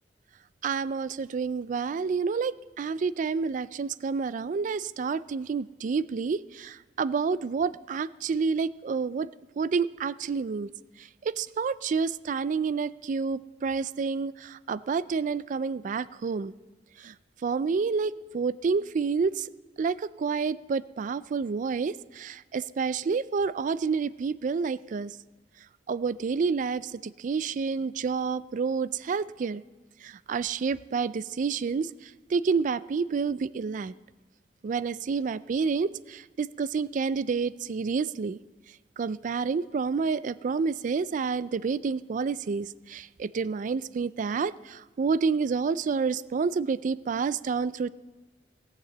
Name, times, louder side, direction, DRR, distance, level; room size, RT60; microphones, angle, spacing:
voice 1, 0.6-9.3 9.6-10.7 11.2-16.5 17.0-17.1 17.4-19.5 19.8-25.1 25.9-29.6 30.0-31.9 32.3-33.9 34.6-38.4 39.0-47.9, right 5 dB, 45° right, 18 dB, 0.3 m, -29 dB
17.0 x 6.8 x 7.7 m, 1.2 s
head